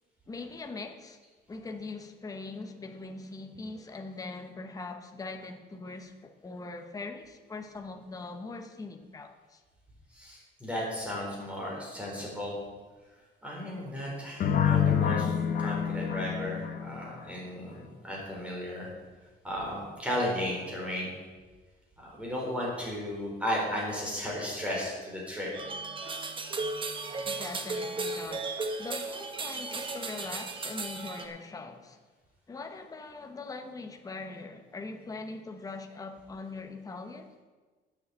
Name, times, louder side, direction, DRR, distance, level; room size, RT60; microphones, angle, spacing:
voice 1, 0.3-1.2 1.5-9.6 27.2-32.0 32.5-37.3, left 3 dB, 20° left, 4 dB, 1.0 m, -41 dB
voice 2, 10.1-12.6 13.4-18.9 19.4-21.1 22.0-25.5, left 1 dB, 5° right, -4 dB, 4.2 m, -34 dB
sound 1, 14.4-17.3, left 8 dB, 50° left, 0.9 m, -27 dB
sound 2, 25.5-31.3, right 3 dB, 25° right, 1.2 m, -35 dB
9.5 x 7.0 x 8.2 m, 1.4 s
cardioid pair, 135°, 19 cm